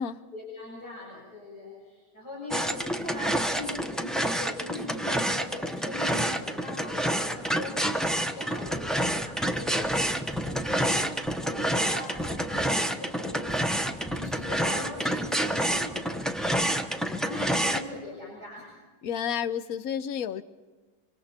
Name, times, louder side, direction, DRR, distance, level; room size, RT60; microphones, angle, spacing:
voice 1, 0.3-18.7, left 2 dB, 85° left, 7.0 m, -41 dB
sound 1, 2.5-17.8, equal, ahead, 0.7 m, -28 dB
voice 2, 19.0-20.4, left 8 dB, 65° left, 1.3 m, -30 dB
26.0 x 25.5 x 4.4 m
omnidirectional pair, 1.7 m